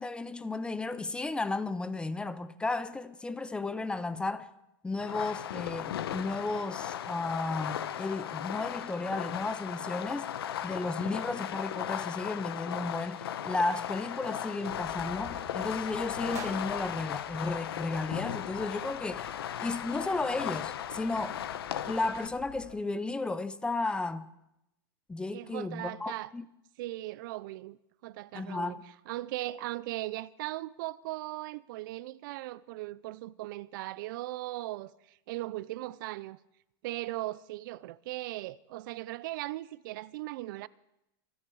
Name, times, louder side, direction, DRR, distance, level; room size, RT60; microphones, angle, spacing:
voice 1, 0.0-4.5 4.8-10.3 10.6-19.3 19.6-21.4 21.9-24.3 25.1-26.4 28.3-28.8, left 3 dB, 10° left, 0.5 m, -34 dB
Fireworks, 5.0-22.3, left 10 dB, 90° left, 0.9 m, -37 dB
Chatter / Car passing by / Traffic noise roadway noise, 14.7-22.8, left 4 dB, 35° left, 4.5 m, -52 dB
sound 1, 16.3-18.5, right 6 dB, 25° right, 2.1 m, -49 dB
voice 2, 25.3-26.3 26.8-27.8 28.0-28.8 29.1-36.4 36.8-40.7, right 17 dB, 60° right, 0.5 m, -38 dB
26.0 x 10.5 x 4.7 m
supercardioid pair, 145°, 12 cm